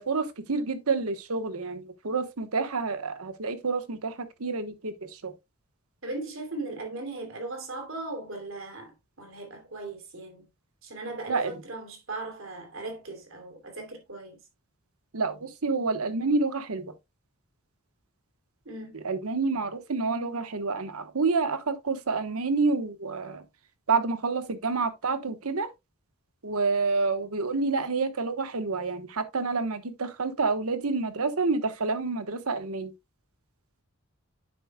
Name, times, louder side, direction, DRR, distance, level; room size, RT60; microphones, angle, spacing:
voice 1, 0.0-5.3 11.3-11.5 15.1-16.9 19.0-23.4 23.9-25.7 26.4-32.9, right 4 dB, 85° right, 1.1 m, -28 dB
voice 2, 6.0-10.4 10.8-14.4 18.6-19.0, right 2 dB, 65° right, 2.9 m, -38 dB
9.1 x 7.3 x 2.2 m
head